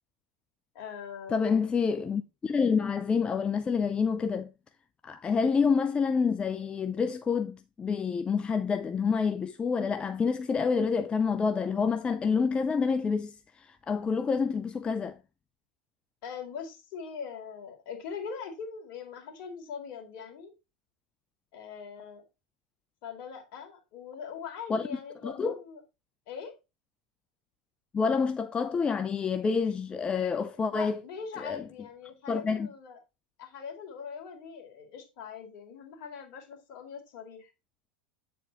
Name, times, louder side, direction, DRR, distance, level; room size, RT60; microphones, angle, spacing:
voice 1, 0.7-1.5 16.2-20.5 21.5-22.2 23.0-25.8 26.3-26.5 30.7-33.0 33.4-37.5, left 6 dB, 55° left, 2.3 m, -42 dB
voice 2, 1.3-4.5 5.0-15.2 24.7-24.8 25.2-25.6 27.9-31.0 31.4-31.6 32.3-32.7, left 5 dB, 20° left, 0.4 m, -28 dB
8.1 x 4.3 x 4.0 m
hypercardioid pair, 90°, 5 cm